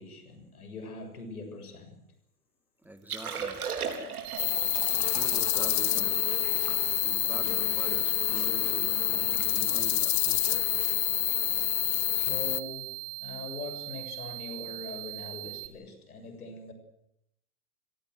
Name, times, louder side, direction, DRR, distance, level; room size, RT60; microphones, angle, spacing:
voice 1, 0.0-2.0 12.1-12.9 13.2-16.7, left 3 dB, 90° left, 6 dB, 7.2 m, -42 dB
voice 2, 2.8-3.6 5.0-6.3 7.0-10.6, right 1 dB, 5° right, 8 dB, 1.9 m, -45 dB
Liquid, 3.0-8.3 8.8-8.9 9.2-9.5 9.7-10.0 10.6-10.8 12.3-12.4, right 6 dB, 85° right, 4.4 m, -39 dB
sound 1, 4.2-15.7, right 22 dB, 45° right, 2.6 m, -41 dB
sound 2, 4.4-12.6, left 24 dB, 45° left, 1.3 m, -27 dB
29.5 x 17.5 x 8.0 m, 0.79 s
hypercardioid pair, 120°, 43 cm